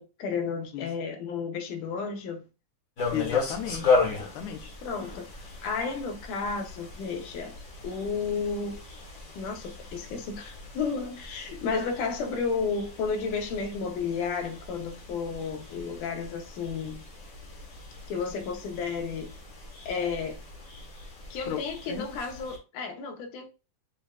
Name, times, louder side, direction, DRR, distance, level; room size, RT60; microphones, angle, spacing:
voice 1, 0.0-2.4 4.8-5.3 5.6-7.6 7.8-8.8 9.4-17.0 18.1-19.3 19.9-20.4 21.3-23.5, left 5 dB, 85° left, 2.5 m, -32 dB
sound 1, 3.0-22.6, left 4 dB, 50° left, 1.0 m, -35 dB
voice 2, 3.1-4.7 5.0-5.2 21.4-21.6 21.9-22.1, left 9 dB, 70° left, 1.3 m, -35 dB
6.8 x 2.4 x 2.3 m
omnidirectional pair, 3.5 m